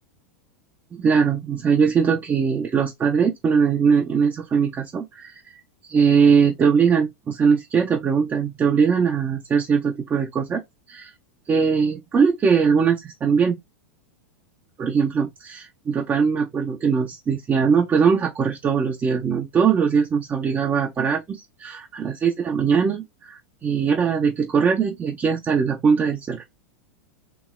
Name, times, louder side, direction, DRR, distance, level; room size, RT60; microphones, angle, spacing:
voice 1, 0.9-5.4 5.8-10.6 10.9-11.1 11.5-13.6 14.8-26.5, right 6 dB, 25° right, 0.5 m, -21 dB
3.0 x 2.8 x 2.2 m
hypercardioid pair, 105°, 8 cm